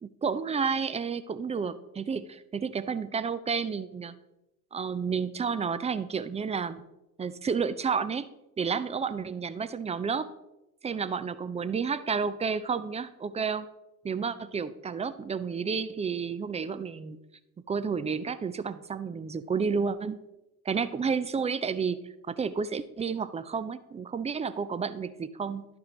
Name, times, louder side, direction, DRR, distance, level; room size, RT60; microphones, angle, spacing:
voice 1, 0.0-4.1 4.7-6.8 7.2-8.3 8.6-10.3 10.8-13.7 14.0-17.2 17.7-20.2 20.7-25.7, right 5 dB, 15° right, 13 dB, 0.4 m, -31 dB
11.5 x 4.8 x 3.8 m, 0.93 s
figure-of-eight pair, 55°, 44 cm